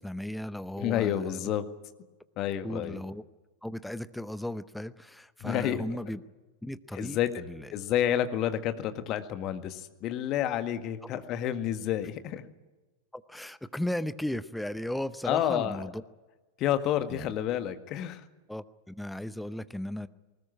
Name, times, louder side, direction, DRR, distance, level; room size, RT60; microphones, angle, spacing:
voice 1, 0.0-1.4 2.6-3.2 3.6-6.2 6.6-7.7 13.1-16.0 17.1-17.3 18.5-20.1, left 1 dB, 5° left, 14 dB, 0.8 m, -36 dB
voice 2, 0.8-1.6 2.4-3.0 5.4-5.8 6.9-7.3 7.7-12.4 15.3-15.8 16.6-18.2, left 11 dB, 35° left, 9 dB, 1.8 m, -29 dB
20.5 x 20.0 x 9.8 m, 1.2 s
figure-of-eight pair, 90°, 0 cm